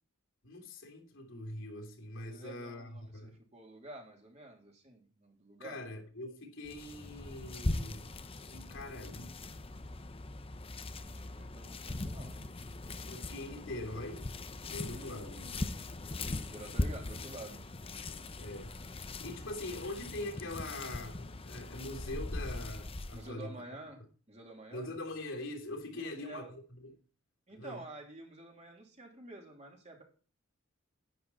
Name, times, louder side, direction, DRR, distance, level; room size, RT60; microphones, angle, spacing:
voice 1, 0.4-3.4 5.6-8.1 8.5-9.4 13.1-14.3 14.7-15.4 18.4-18.8 19.2-23.6 24.7-26.9 27.5-27.8, left 2 dB, 70° left, 3.1 m, -43 dB
voice 2, 2.3-5.8 10.8-12.5 14.8-15.6 16.4-17.7 23.1-24.0 24.3-24.9 25.9-26.5 27.5-30.0, right 2 dB, 30° right, 3.1 m, -49 dB
sound 1, 6.6-23.3, left 2 dB, 25° left, 0.8 m, -40 dB
11.0 x 10.0 x 4.2 m
head